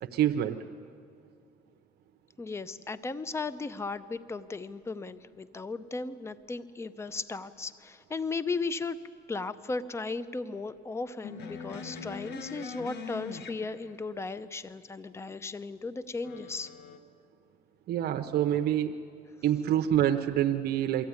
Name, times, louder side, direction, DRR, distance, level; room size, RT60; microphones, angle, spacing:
voice 1, 0.0-0.6 17.9-18.9 19.4-21.1, right 11 dB, 70° right, 5 dB, 0.8 m, -26 dB
voice 2, 2.4-9.0 9.3-16.7, left 3 dB, 15° left, 15 dB, 0.6 m, -36 dB
sound 1, 11.2-14.2 16.2-17.0, left 6 dB, 80° left, 1.5 m, -42 dB
23.0 x 15.0 x 9.6 m, 2.4 s
cardioid pair, 110°, 17 cm